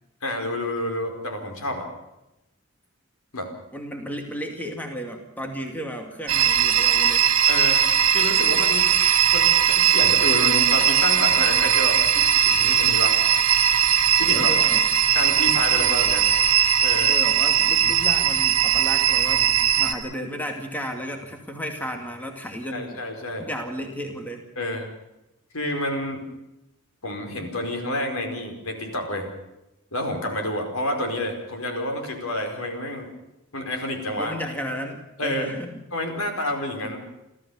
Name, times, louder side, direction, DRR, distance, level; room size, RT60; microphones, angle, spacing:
voice 1, 0.2-1.9 3.3-3.5 7.5-7.8 8.1-8.9 9.3-13.2 14.1-14.5 15.1-16.3 16.8-17.1 22.7-23.5 24.6-24.9 25.5-26.2 27.0-29.3 29.9-33.1 33.5-34.3 35.2-35.5 35.9-37.0, left 1 dB, 80° left, 4 dB, 4.9 m, -29 dB
voice 2, 3.7-7.2 14.2-14.9 17.1-23.0 23.4-24.4 34.2-35.8, equal, 10° left, 3 dB, 2.3 m, -33 dB
sound 1, 6.3-19.9, right 9 dB, 80° right, 1.9 m, -19 dB
28.5 x 14.0 x 7.2 m, 0.93 s
head